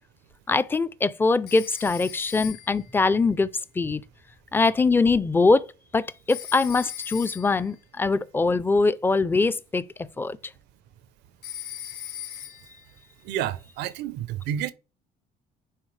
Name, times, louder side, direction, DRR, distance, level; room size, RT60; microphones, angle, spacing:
voice 1, 0.5-3.5 3.8-4.0 4.5-5.7 5.9-9.8 10.2-10.4, left 3 dB, 15° left, 0.4 m, -22 dB
Telephone, 1.5-2.9 6.3-7.7 11.4-12.8, left 11 dB, 75° left, 2.3 m, -39 dB
voice 2, 13.2-14.7, right 11 dB, 90° right, 0.7 m, -30 dB
9.8 x 3.9 x 3.2 m
cardioid pair, 110°, 17 cm